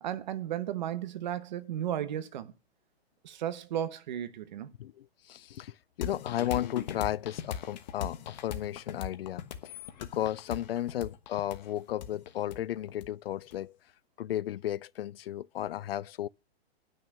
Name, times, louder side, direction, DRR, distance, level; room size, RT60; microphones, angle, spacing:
voice 1, 0.0-2.5 3.2-4.7, right 10 dB, 45° right, 1.1 m, -34 dB
voice 2, 4.8-13.7 14.2-16.3, left 12 dB, 65° left, 0.5 m, -34 dB
sound 1, 6.0-13.6, left 9 dB, 45° left, 1.3 m, -39 dB
11.0 x 6.4 x 6.5 m
hypercardioid pair, 170°, 32 cm